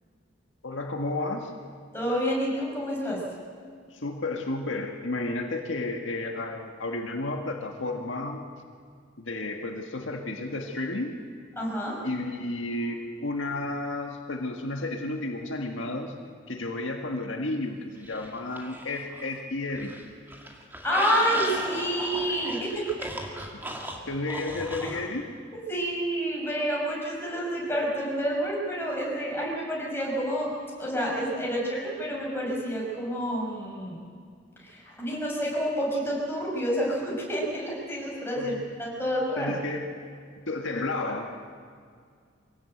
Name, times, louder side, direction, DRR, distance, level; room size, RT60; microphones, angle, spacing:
voice 1, 0.6-1.5 3.9-8.4 9.2-11.1 12.0-16.1 16.5-19.9 23.5-23.8 24.1-25.2 38.4-38.6 39.4-39.9 40.5-41.3, left 2 dB, 75° left, 2 dB, 1.7 m, -32 dB
voice 2, 1.9-3.2 11.6-12.0 20.8-23.1 24.8-24.9 25.5-30.5 30.8-34.0 34.6-39.6, equal, 10° left, -4 dB, 6.0 m, -29 dB
sound 1, 18.0-19.4 19.7-25.0, right 1 dB, 10° right, 2.0 m, -37 dB
24.0 x 17.0 x 7.9 m, 2.1 s
head